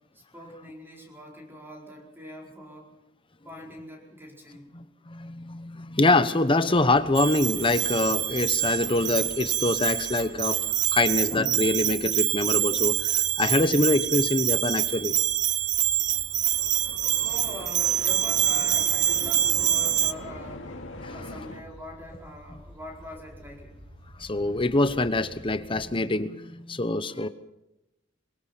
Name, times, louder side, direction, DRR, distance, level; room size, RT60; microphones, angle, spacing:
voice 1, 0.1-2.9 3.4-4.7 17.0-20.7 21.1-23.8, equal, 10° right, 0 dB, 4.7 m, -43 dB
voice 2, 4.7-10.6 10.9-15.1 21.0-21.1 24.2-27.3, left 2 dB, 25° left, 12 dB, 1.1 m, -25 dB
sound 1, 6.7-25.9, equal, 65° right, 6.5 m, -50 dB
Bell, 7.1-20.1, right 11 dB, 40° right, 0.6 m, -26 dB
sound 2, 16.2-21.6, left 2 dB, 80° left, 2.5 m, -41 dB
23.0 x 21.5 x 5.9 m, 0.92 s
head